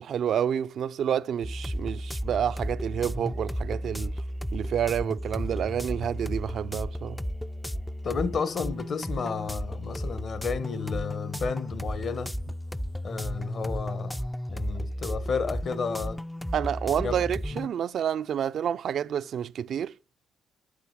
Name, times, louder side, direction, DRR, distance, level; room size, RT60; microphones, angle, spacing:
voice 1, 0.0-4.1 4.5-7.2 16.5-19.9, right 9 dB, 65° right, 0.4 m, -29 dB
sound 1, 1.4-17.7, equal, 5° left, 0.3 m, -34 dB
voice 2, 8.0-12.4 13.0-14.2 14.5-16.2 17.0-17.2, left 5 dB, 55° left, 1.1 m, -32 dB
8.5 x 5.1 x 5.6 m
cardioid pair, 90°, 0 cm